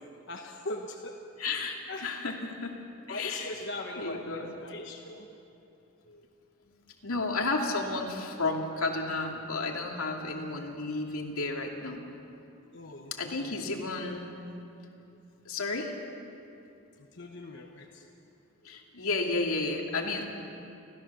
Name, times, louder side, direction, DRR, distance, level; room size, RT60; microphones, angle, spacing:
voice 1, 0.3-1.1 1.9-2.1 3.1-5.3 12.7-13.7 17.2-18.0, left 2 dB, 55° left, 1 dB, 1.2 m, -40 dB
voice 2, 1.4-2.8 3.1-3.6 4.0-4.5 6.1-6.2 7.0-12.0 13.1-14.3 15.4-15.9 18.6-20.3, left 3 dB, 85° left, 1 dB, 2.6 m, -32 dB
30.0 x 14.0 x 6.8 m, 2.7 s
head